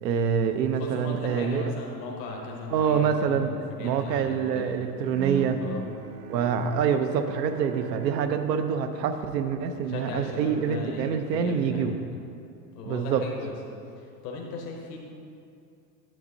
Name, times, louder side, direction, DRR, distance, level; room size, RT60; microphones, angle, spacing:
voice 1, 0.0-1.7 2.7-3.5 3.8-5.6 6.3-11.9 12.9-13.2, right 7 dB, 85° right, 8 dB, 0.7 m, -26 dB
voice 2, 0.7-4.8 5.2-5.8 9.9-12.1 12.7-13.5 14.0-15.0, left 3 dB, 75° left, 0 dB, 1.0 m, -37 dB
Bowed string instrument, 5.1-10.2, right 7 dB, 45° right, 0.5 m, -40 dB
9.3 x 7.1 x 2.7 m, 2.5 s
hypercardioid pair, 105°, 48 cm